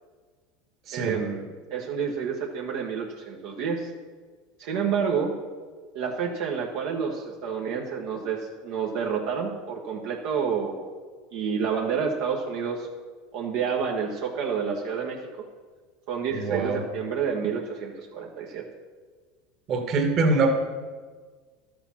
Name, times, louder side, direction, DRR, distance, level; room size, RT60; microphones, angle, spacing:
voice 1, 0.9-3.9 4.6-5.3 5.9-10.9 11.3-12.9 13.3-15.2 16.1-18.6, right 6 dB, 65° right, 0 dB, 1.3 m, -29 dB
voice 2, 16.3-16.8 19.7-20.5, right 3 dB, 40° right, 4 dB, 1.8 m, -24 dB
12.0 x 6.8 x 5.9 m, 1.5 s
supercardioid pair, 120°, 0 cm